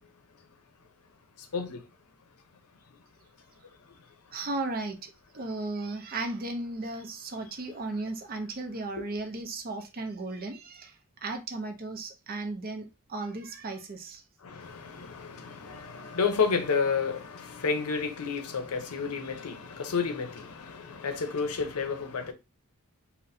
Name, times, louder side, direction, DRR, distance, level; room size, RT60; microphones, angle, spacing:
voice 1, 4.3-14.2, right 2 dB, 40° right, 0.5 m, -35 dB
voice 2, 14.4-22.3, left 5 dB, 85° left, 0.6 m, -31 dB
4.1 x 2.1 x 2.6 m
head